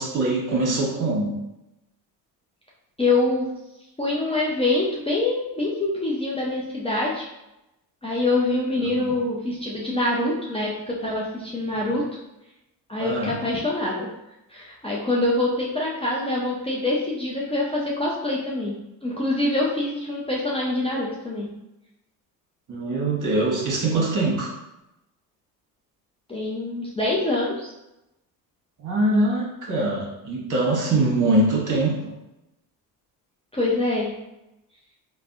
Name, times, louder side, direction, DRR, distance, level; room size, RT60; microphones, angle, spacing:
voice 1, 0.0-1.3 9.0-9.1 13.0-13.3 22.7-24.5 28.8-31.9, right 2 dB, 40° right, -3 dB, 1.3 m, -23 dB
voice 2, 3.0-3.5 4.0-7.2 8.0-12.0 12.9-14.1 14.5-21.5 26.3-27.7 33.5-34.1, left 2 dB, 15° left, -5 dB, 0.6 m, -25 dB
3.2 x 2.3 x 2.5 m, 0.91 s
hypercardioid pair, 65°, 46 cm